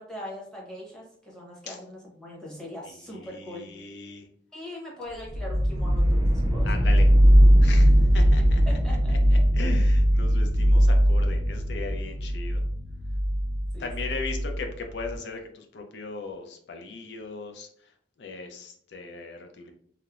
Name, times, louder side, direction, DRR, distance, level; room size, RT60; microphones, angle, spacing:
voice 1, 0.0-3.7 4.5-6.9 8.7-9.1 13.7-14.2, left 1 dB, 5° left, -3 dB, 0.7 m, -41 dB
voice 2, 2.8-4.3 6.6-7.1 7.6-8.6 9.1-12.6 13.8-17.9 18.2-19.7, left 4 dB, 70° left, 4 dB, 0.4 m, -38 dB
sound 1, 5.3-15.2, equal, 25° right, 0.3 m, -20 dB
3.0 x 2.0 x 2.3 m, 0.62 s
head